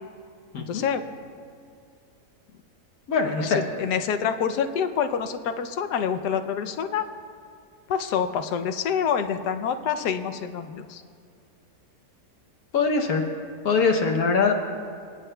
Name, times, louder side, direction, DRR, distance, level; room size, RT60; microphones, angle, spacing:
voice 1, 0.6-1.0 3.3-7.1 7.9-11.0, left 7 dB, 90° left, 8 dB, 1.2 m, -27 dB
voice 2, 3.1-3.6 12.7-13.2 13.6-14.5, left 5 dB, 65° left, 2 dB, 1.3 m, -22 dB
25.0 x 9.5 x 2.2 m, 2.2 s
omnidirectional pair, 1.7 m